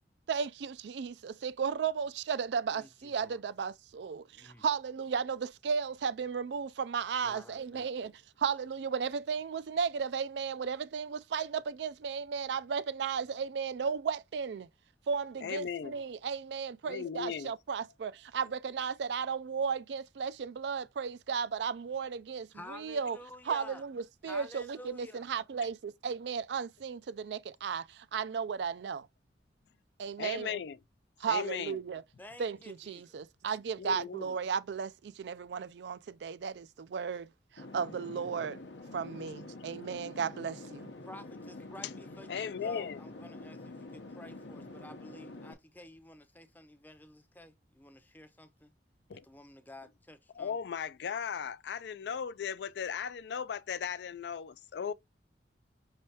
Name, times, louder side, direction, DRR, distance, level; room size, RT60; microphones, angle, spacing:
voice 1, 0.3-8.1 8.4-14.6 15.1-23.2 23.5-29.1 30.0-30.6 31.2-32.0 32.4-38.6 38.9-40.9, right 6 dB, 75° right, 0.4 m, -35 dB
voice 2, 2.7-3.4 4.3-4.6 7.2-8.1 22.5-23.8 24.3-25.3 32.2-33.2 41.0-48.7 49.2-50.6, left 1 dB, 10° left, 0.6 m, -51 dB
voice 3, 15.4-16.0 16.9-17.5 30.2-30.8 31.3-31.8 33.8-34.3 42.3-43.0 49.1-49.2 50.3-54.9, left 7 dB, 70° left, 0.3 m, -37 dB
sound 1, 37.6-45.5, left 2 dB, 90° left, 0.8 m, -47 dB
5.3 x 3.3 x 2.8 m
head